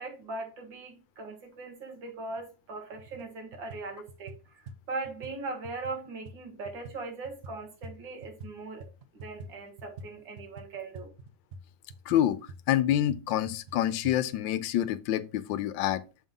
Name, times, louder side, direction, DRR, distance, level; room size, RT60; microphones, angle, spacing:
voice 1, 0.0-4.4 4.9-8.8 9.1-11.1, right 3 dB, 75° right, 2.4 m, -39 dB
sound 1, 2.4-2.5 2.9-3.3 3.5-8.5 8.8-14.2, right 1 dB, 60° right, 0.7 m, -47 dB
voice 2, 12.1-12.4 12.7-16.0, left 12 dB, 85° left, 1.3 m, -27 dB
6.9 x 5.4 x 3.6 m
omnidirectional pair, 2.0 m